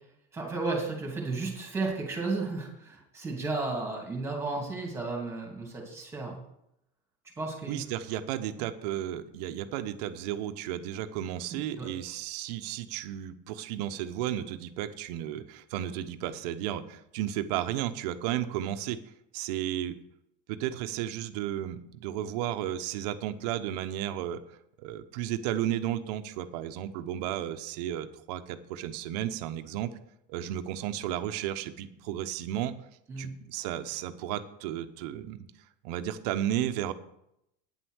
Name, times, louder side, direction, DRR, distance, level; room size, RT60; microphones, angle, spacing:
voice 1, 0.3-6.4 7.4-7.8 8.6-8.7 11.8-11.9 33.1-33.3, right 3 dB, 15° right, 0 dB, 2.6 m, -33 dB
voice 2, 7.7-19.0 19.3-20.0 20.5-24.4 24.8-29.9 30.3-32.7 33.2-35.5 35.8-36.9, right 12 dB, 75° right, 9 dB, 0.9 m, -33 dB
9.5 x 8.0 x 6.3 m, 0.78 s
cardioid pair, 150°, 21 cm